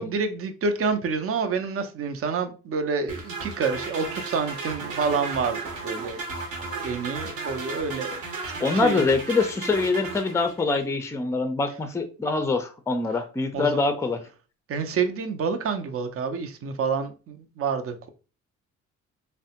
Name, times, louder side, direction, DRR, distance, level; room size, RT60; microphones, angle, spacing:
voice 1, 0.0-5.6 5.8-6.2 6.6-8.2 8.7-9.0 13.5-13.8 14.7-18.1, right 5 dB, 50° right, 0.6 m, -28 dB
sound 1, 3.1-10.8, right 3 dB, 70° right, 0.9 m, -35 dB
voice 2, 8.6-14.2, left 3 dB, 10° left, 0.4 m, -24 dB
3.2 x 2.1 x 2.8 m
cardioid pair, 90°, 30 cm